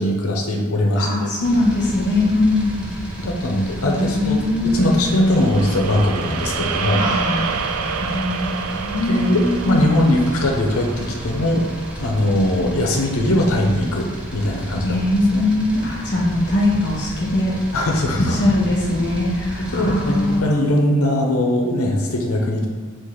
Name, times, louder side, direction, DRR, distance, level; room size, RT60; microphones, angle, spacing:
voice 1, 0.0-1.3 3.2-7.0 9.1-11.6 12.0-14.1 14.3-15.0 15.3-15.4 17.7-18.4 19.7-22.7, left 1 dB, 75° left, 1 dB, 0.7 m, -20 dB
voice 2, 1.0-2.9 3.8-4.8 7.0-7.5 7.9-9.8 14.8-17.5 18.2-20.6, left 1 dB, 55° left, -4 dB, 1.1 m, -21 dB
sound 1, 1.4-20.4, equal, 5° right, 0.7 m, -33 dB
sound 2, 5.0-13.3, right 6 dB, 80° right, 0.4 m, -29 dB
4.7 x 2.5 x 3.8 m, 1.5 s
head